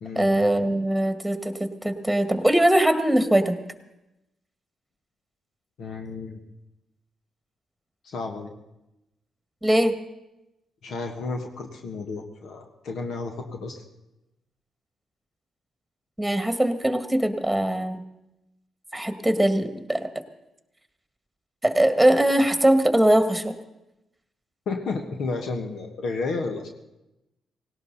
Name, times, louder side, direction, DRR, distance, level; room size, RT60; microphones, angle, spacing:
voice 1, 0.2-3.6 9.6-10.0 16.2-18.0 18.9-20.1 21.6-23.5, right 1 dB, 5° right, 9 dB, 1.8 m, -21 dB
voice 2, 5.8-6.4 8.0-8.5 10.8-13.8 24.6-26.7, left 3 dB, 65° left, 4 dB, 1.5 m, -32 dB
18.0 x 17.5 x 4.1 m, 0.93 s
hypercardioid pair, 40°, 0 cm